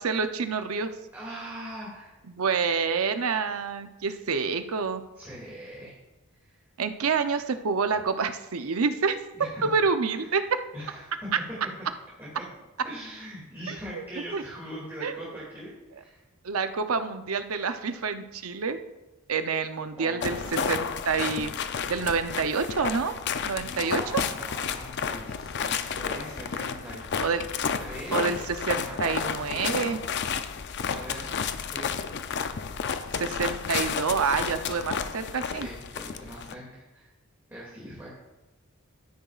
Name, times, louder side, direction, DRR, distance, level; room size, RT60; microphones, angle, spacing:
voice 1, 0.0-1.0 2.3-5.0 6.8-9.2 9.6-10.6 13.7-14.0 14.3-14.4 15.0-15.3 16.4-18.8 19.3-21.5 21.9-23.1 23.4-24.2 27.2-27.4 28.1-30.0 33.1-35.7, right 5 dB, 75° right, 9 dB, 0.7 m, -28 dB
voice 2, 1.1-2.1 5.1-5.9 6.4-6.6 9.3-9.7 10.1-11.3 12.2-12.4 12.8-16.2 20.0-20.8 23.6-27.1 27.8-28.4 28.7-29.9 30.9-31.3 31.6-31.9 35.5-37.1 37.5-38.1, equal, 10° right, -7 dB, 2.3 m, -41 dB
sound 1, 20.2-36.5, left 6 dB, 55° left, 0.5 m, -32 dB
12.0 x 10.0 x 2.4 m, 1.1 s
head